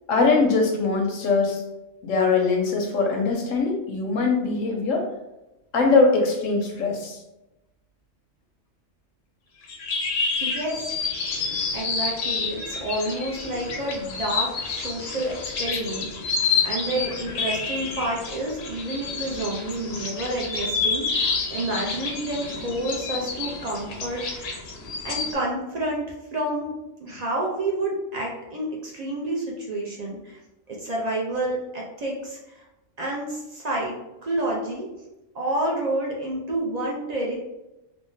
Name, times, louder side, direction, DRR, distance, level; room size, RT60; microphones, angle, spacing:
voice 1, 0.1-1.6 2.0-5.1 5.7-7.2, left 4 dB, 85° left, 2 dB, 1.1 m, -22 dB
sound 1, 9.6-25.3, left 4 dB, 65° left, 0.7 m, -29 dB
voice 2, 10.4-10.9 11.7-16.3 16.6-24.6 25.0-30.4 30.7-32.6 33.0-34.0 34.2-34.9 35.3-37.4, right 1 dB, 60° right, -2 dB, 0.4 m, -29 dB
3.5 x 2.1 x 2.6 m, 0.97 s
omnidirectional pair, 1.3 m